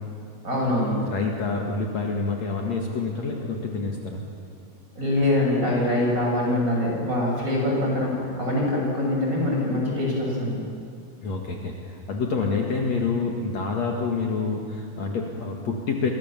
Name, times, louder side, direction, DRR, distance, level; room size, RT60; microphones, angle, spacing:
voice 1, 0.4-1.0 4.9-10.6, left 1 dB, 20° right, -2 dB, 6.8 m, -24 dB
voice 2, 1.1-4.2 11.2-16.1, left 4 dB, 55° left, 0 dB, 2.8 m, -27 dB
29.0 x 23.0 x 7.4 m, 2.4 s
omnidirectional pair, 4.1 m